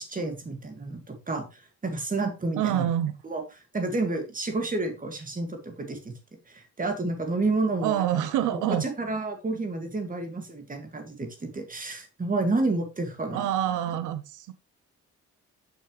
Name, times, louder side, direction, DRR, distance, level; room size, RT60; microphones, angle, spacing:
voice 1, 0.0-2.9 3.2-3.4 3.7-6.1 6.5-8.3 8.5-13.5, right 2 dB, 25° right, 2.1 m, -30 dB
voice 2, 2.6-3.1 7.8-8.8 13.3-14.5, right 11 dB, 85° right, 0.6 m, -26 dB
6.5 x 6.2 x 3.2 m
cardioid pair, 90°, 30 cm